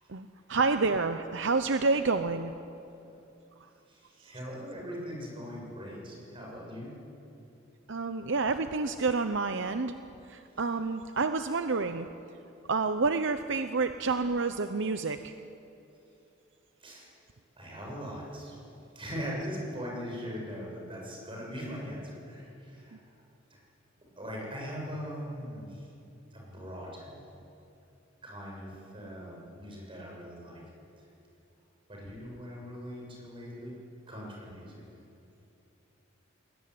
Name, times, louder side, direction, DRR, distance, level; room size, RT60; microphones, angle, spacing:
voice 1, 0.1-2.5 7.9-9.9 10.3-12.1 12.7-15.3, right 4 dB, 65° right, 9 dB, 0.8 m, -29 dB
voice 2, 3.9-6.9 16.8-17.2 17.6-18.6 18.9-23.0 23.5-23.6 24.0-25.9 26.3-27.1 28.2-30.6 31.9-33.7 34.1-34.8, equal, 25° right, -2 dB, 7.5 m, -40 dB
21.0 x 20.5 x 9.8 m, 2.8 s
head